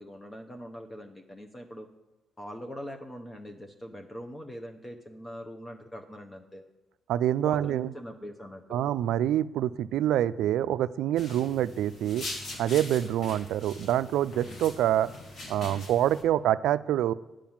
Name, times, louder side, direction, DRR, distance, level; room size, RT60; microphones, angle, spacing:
voice 1, 0.0-1.9 2.4-6.6 7.4-8.8, equal, 20° left, 5 dB, 0.8 m, -42 dB
voice 2, 7.1-7.9 8.7-12.2 12.6-15.1 15.5-17.1, right 11 dB, 85° right, 16 dB, 0.3 m, -26 dB
sound 1, 11.2-16.2, left 2 dB, 55° left, 2.0 m, -42 dB
9.2 x 5.0 x 7.2 m, 1.1 s
cardioid pair, 90°, 0 cm